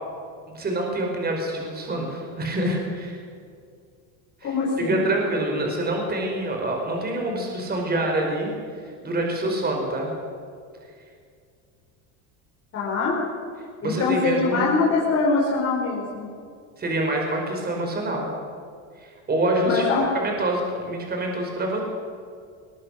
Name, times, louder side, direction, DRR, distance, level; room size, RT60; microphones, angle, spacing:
voice 1, 0.5-3.2 4.4-8.5 8.8-10.1 13.8-14.7 16.8-18.3 19.0-19.8 20.1-21.8, right 1 dB, 25° right, 1 dB, 5.0 m, -26 dB
voice 2, 4.4-5.0 12.7-13.2 13.8-16.3 19.7-20.1, left 4 dB, 40° left, -4 dB, 4.9 m, -23 dB
21.5 x 21.0 x 6.6 m, 2.2 s
cardioid pair, 140°, 38 cm